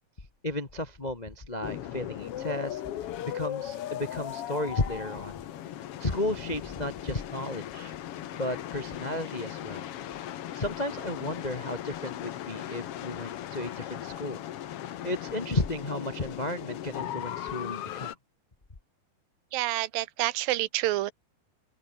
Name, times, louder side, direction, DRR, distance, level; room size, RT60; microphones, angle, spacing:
voice 1, 0.4-2.8 3.2-5.4 6.0-7.9 8.3-9.9 10.5-14.4 15.0-18.1, left 1 dB, 50° left, 0.4 m, -33 dB
sound 1, 1.6-18.1, left 12 dB, 70° left, 1.4 m, -38 dB
voice 2, 19.5-21.1, right 16 dB, 80° right, 2.6 m, -28 dB
open air
omnidirectional pair, 4.1 m